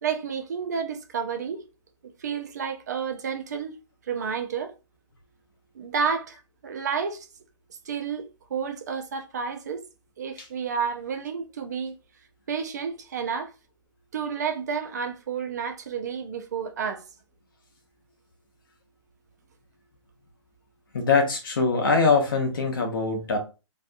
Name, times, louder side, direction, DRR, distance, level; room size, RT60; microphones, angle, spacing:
voice 1, 0.0-1.6 2.2-3.7 4.1-4.7 5.7-6.4 6.6-7.3 7.9-9.9 10.2-12.0 12.5-13.5 14.1-17.0, right 6 dB, 35° right, 0.4 m, -30 dB
voice 2, 20.9-23.4, left 4 dB, 45° left, 0.8 m, -22 dB
2.6 x 2.3 x 2.5 m
hypercardioid pair, 170°, 16 cm